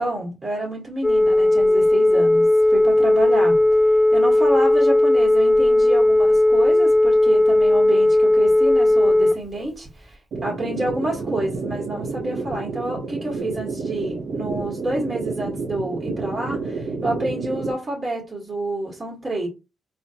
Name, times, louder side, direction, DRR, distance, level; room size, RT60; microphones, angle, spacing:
voice 1, 0.0-19.5, right 1 dB, 25° right, 1.3 m, -29 dB
Telephone, 1.0-9.3, left 1 dB, 5° right, 0.4 m, -16 dB
sound 1, 10.3-17.7, right 4 dB, 70° right, 0.8 m, -30 dB
4.2 x 2.5 x 2.8 m
cardioid pair, 90°, 0 cm